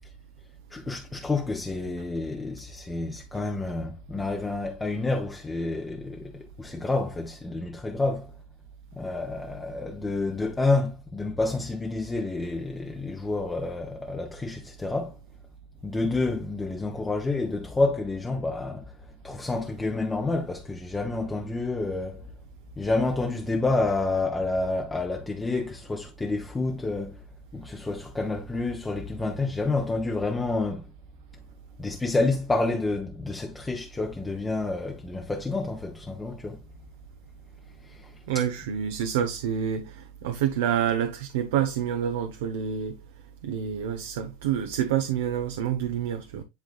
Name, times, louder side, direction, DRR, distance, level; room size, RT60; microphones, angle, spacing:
voice 1, 0.7-8.3 8.9-15.1 15.8-19.0 19.2-22.3 22.8-27.2 27.5-30.9 31.8-36.6 37.8-38.5, left 3 dB, 10° left, 0.8 m, -29 dB
voice 2, 38.3-43.0 43.4-46.4, right 9 dB, 80° right, 0.9 m, -28 dB
10.5 x 3.9 x 2.4 m
supercardioid pair, 155°, 0 cm